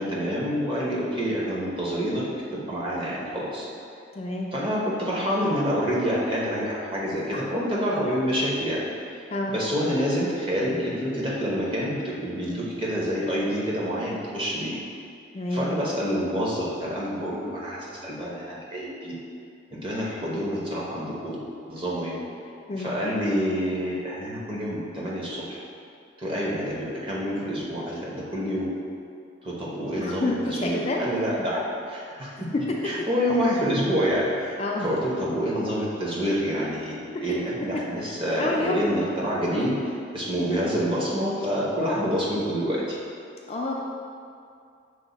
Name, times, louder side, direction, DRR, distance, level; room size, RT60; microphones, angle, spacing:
voice 1, 0.0-2.2 2.5-3.7 4.5-8.8 9.1-14.7 15.5-19.1 19.7-22.2 22.8-25.6 26.2-28.7 29.4-31.6 31.9-32.5 32.8-39.7 40.1-43.0, equal, 25° right, -5 dB, 0.8 m, -27 dB
voice 2, 4.1-4.5 7.3-7.5 9.3-9.6 15.3-15.7 22.7-22.9 30.0-31.0 32.2-32.3 34.6-34.9 38.3-38.8 43.5-43.7, left 2 dB, 35° left, -2 dB, 0.3 m, -28 dB
6.2 x 2.1 x 3.9 m, 2.4 s
head